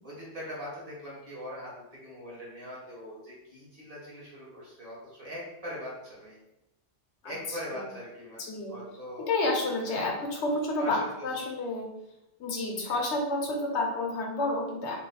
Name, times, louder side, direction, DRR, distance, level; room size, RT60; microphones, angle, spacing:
voice 1, 0.0-6.4 7.2-8.4 8.7-9.3 10.8-11.0 12.8-13.0, equal, 35° right, -6 dB, 1.3 m, -41 dB
voice 2, 7.2-7.9 8.4-8.8 9.2-11.9 12.4-15.0, left 2 dB, 80° left, 0 dB, 1.1 m, -30 dB
3.0 x 2.1 x 4.0 m, 0.90 s
omnidirectional pair, 1.2 m